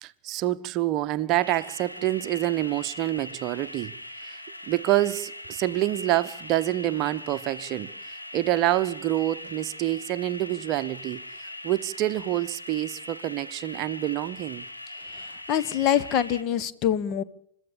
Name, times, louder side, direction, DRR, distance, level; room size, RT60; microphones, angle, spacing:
voice 1, 0.0-4.4 4.7-14.6, right 15 dB, 40° right, 0.8 m, -27 dB
sound 1, 1.4-16.4, left 1 dB, 85° left, 2.3 m, -41 dB
voice 2, 15.5-17.2, left 10 dB, 40° left, 1.1 m, -24 dB
29.5 x 13.5 x 7.0 m
figure-of-eight pair, 90°, 0 cm